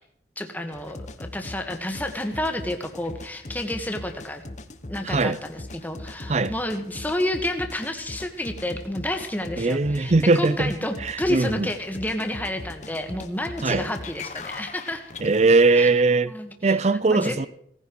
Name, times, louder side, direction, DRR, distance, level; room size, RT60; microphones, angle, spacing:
voice 1, 0.3-4.4 4.9-15.0 15.7-15.9 16.3-16.8 17.1-17.4, left 1 dB, 10° left, 1.6 m, -30 dB
sound 1, 0.7-15.8, left 2 dB, 40° left, 1.1 m, -40 dB
voice 2, 5.1-5.4 6.3-6.5 9.6-10.7 11.3-11.7 13.6-13.9 15.2-16.3 16.6-17.5, right 3 dB, 40° right, 0.5 m, -20 dB
18.0 x 15.0 x 4.7 m
head